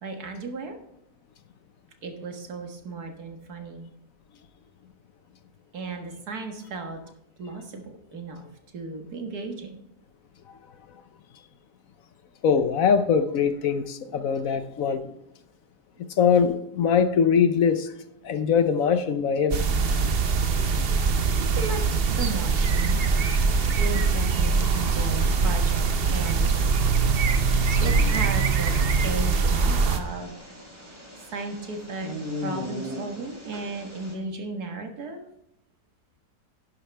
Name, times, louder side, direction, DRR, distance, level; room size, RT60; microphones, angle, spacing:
voice 1, 0.0-0.8 2.0-3.9 5.7-7.0 7.4-8.4 8.7-9.8 14.1-14.3 15.0-15.1 21.4-21.8 22.1-23.0 23.8-26.8 27.7-28.7 29.0-30.3 31.3-32.1 32.4-35.3, right 3 dB, 70° right, 4 dB, 2.1 m, -35 dB
voice 2, 12.4-15.0 16.0-17.9 18.2-19.6, left 6 dB, 65° left, 10 dB, 1.1 m, -22 dB
sound 1, 19.5-30.0, right 4 dB, 45° right, 0.9 m, -22 dB
sound 2, 24.5-34.1, left 1 dB, 15° right, 3.6 m, -40 dB
11.5 x 10.0 x 3.4 m, 0.83 s
omnidirectional pair, 1.7 m